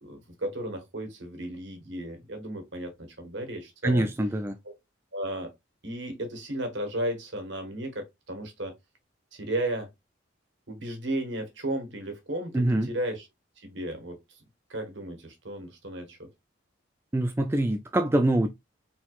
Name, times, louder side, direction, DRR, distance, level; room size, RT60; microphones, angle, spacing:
voice 1, 0.0-4.1 4.6-4.7 5.1-5.5 5.8-8.7 9.3-9.9 10.7-13.3 13.6-14.2 14.7-16.3, right 1 dB, 65° right, 1.6 m, -34 dB
voice 2, 3.8-4.6 12.5-12.9 17.1-18.5, right 1 dB, 10° right, 0.3 m, -24 dB
4.5 x 3.8 x 2.4 m
head